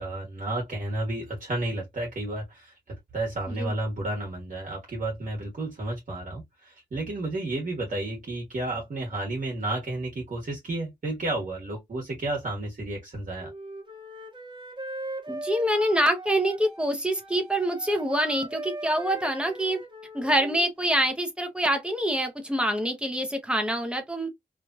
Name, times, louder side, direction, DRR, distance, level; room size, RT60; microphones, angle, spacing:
voice 1, 0.0-13.5, right 2 dB, 55° right, 1.4 m, -32 dB
Wind instrument woodwind instrument, 13.4-16.9 17.1-20.7, right 1 dB, 30° right, 1.0 m, -39 dB
voice 2, 15.3-19.8 20.1-24.3, right 1 dB, 5° right, 0.9 m, -26 dB
3.1 x 2.6 x 2.3 m
wide cardioid pair, 105°, 16 cm